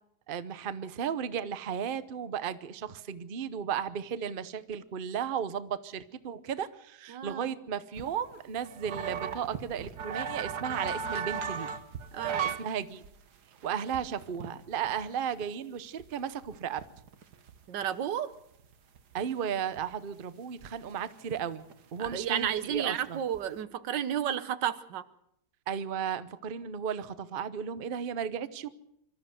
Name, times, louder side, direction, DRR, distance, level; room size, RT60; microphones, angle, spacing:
voice 1, 0.3-11.7 12.4-13.0 13.6-16.8 19.1-21.6 21.9-23.2 25.7-28.7, right 8 dB, 40° right, 14 dB, 0.9 m, -35 dB
voice 2, 7.1-7.6 12.1-12.5 17.7-18.3 22.0-25.0, right 9 dB, 85° right, 14 dB, 1.6 m, -32 dB
sound 1, 8.0-12.7 13.0-13.2 13.6-15.0 15.4-15.5 16.0-16.1 16.3-17.9 18.3-18.4 18.6-19.2 19.8-19.9 20.6-20.7 21.0-22.1 22.4-22.8 23.1-23.5, right 7 dB, 70° right, 1.8 m, -36 dB
25.0 x 13.5 x 7.9 m, 0.75 s
omnidirectional pair, 1.9 m